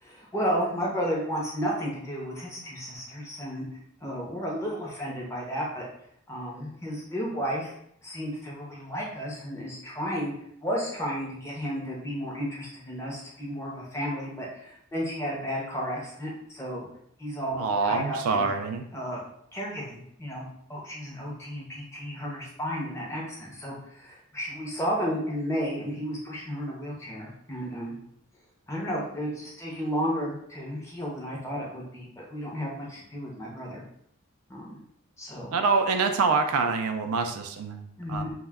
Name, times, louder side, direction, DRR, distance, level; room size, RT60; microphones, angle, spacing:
voice 1, 0.0-3.7 4.0-5.8 6.3-7.7 8.0-10.3 10.6-16.9 17.2-18.5 18.9-19.2 19.5-27.9 28.7-33.8 34.5-34.8 35.2-35.6 38.0-38.3, equal, 15° left, -4 dB, 0.6 m, -33 dB
voice 2, 17.6-18.8 35.5-37.8 38.1-38.2, right 4 dB, 80° right, 6 dB, 0.3 m, -25 dB
2.1 x 2.1 x 3.4 m, 0.70 s
head